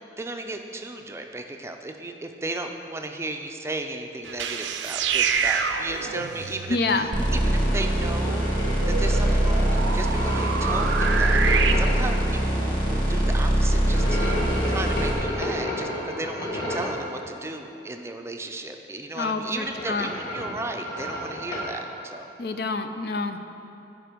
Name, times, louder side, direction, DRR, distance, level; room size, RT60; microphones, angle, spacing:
voice 1, 0.2-8.5 8.8-14.3 14.7-22.3, right 2 dB, 15° right, 4 dB, 0.4 m, -35 dB
sound 1, 4.2-11.7, right 6 dB, 85° right, 0.5 m, -28 dB
voice 2, 6.7-7.1 19.1-20.1 22.4-23.4, left 3 dB, 60° left, 8 dB, 0.5 m, -27 dB
sound 2, 7.1-15.1, right 1 dB, 25° left, 1.7 m, -23 dB
sound 3, 7.7-12.2 13.8-17.1 19.2-21.8, left 1 dB, 75° left, 1.7 m, -32 dB
12.0 x 5.1 x 5.1 m, 2.9 s
head